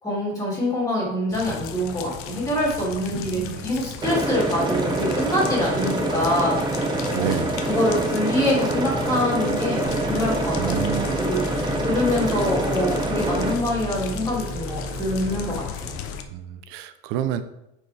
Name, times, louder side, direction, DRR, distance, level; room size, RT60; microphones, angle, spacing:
voice 1, 0.0-7.3 7.7-15.9, left 1 dB, 10° left, -5 dB, 2.5 m, -25 dB
sound 1, 1.3-16.2, left 7 dB, 45° left, 0.6 m, -36 dB
voice 2, 3.1-3.6 7.1-7.5 10.6-11.2 16.3-17.4, right 11 dB, 70° right, 11 dB, 0.7 m, -29 dB
sound 2, 4.0-13.5, right 2 dB, 15° right, 0.6 m, -26 dB
sound 3, 9.8-15.5, right 1 dB, 40° right, 1.2 m, -34 dB
9.3 x 4.6 x 3.4 m, 0.86 s
cardioid pair, 165°, 30 cm